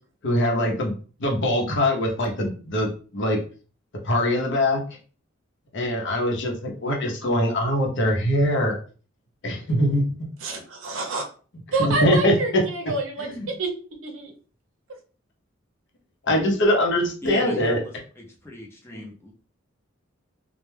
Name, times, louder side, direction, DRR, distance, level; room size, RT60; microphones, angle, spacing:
voice 1, 0.2-0.9 1.2-3.4 4.0-4.8 5.7-8.8 9.4-10.0 11.8-12.6 13.2-13.5 16.3-17.8 18.9-19.0, left 1 dB, 60° left, 1 dB, 0.7 m, -22 dB
voice 2, 10.4-11.2 11.7-13.7 14.0-14.3, right 2 dB, 75° right, 3 dB, 0.6 m, -27 dB
voice 3, 17.2-19.3, left 2 dB, 10° left, -1 dB, 0.6 m, -37 dB
2.1 x 2.1 x 3.2 m, 0.39 s
head